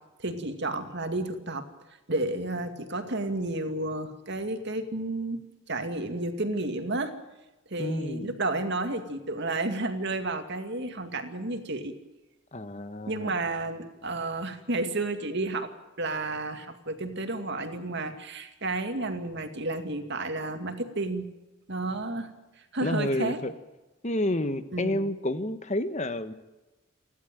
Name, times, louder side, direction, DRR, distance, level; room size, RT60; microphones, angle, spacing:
voice 1, 0.2-1.6 2.1-5.4 5.7-7.1 7.7-11.9 13.1-15.7 16.0-21.3 21.7-22.3 22.7-23.4 24.7-25.0, right 2 dB, 55° right, 7 dB, 2.3 m, -31 dB
voice 2, 7.8-8.4 12.5-13.3 22.8-23.5 24.0-26.3, left 1 dB, 35° left, 11 dB, 1.4 m, -30 dB
29.0 x 12.0 x 9.2 m, 1.0 s
head